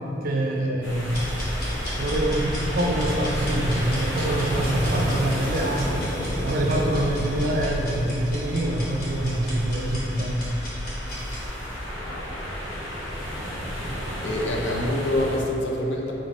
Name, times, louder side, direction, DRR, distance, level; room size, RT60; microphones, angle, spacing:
voice 1, 0.2-1.4 2.0-6.1 6.4-10.5, right 1 dB, 50° right, 0 dB, 0.4 m, -25 dB
sound 1, 0.8-15.4, equal, 85° left, 1.1 m, -32 dB
sound 2, 1.1-11.5, equal, 50° left, 0.9 m, -33 dB
sound 3, 4.3-13.4, equal, 10° right, 0.7 m, -49 dB
voice 2, 12.0-12.4 13.8-14.0 14.2-16.1, left 1 dB, 70° left, -1 dB, 0.4 m, -27 dB
3.9 x 2.6 x 3.2 m, 3.0 s
head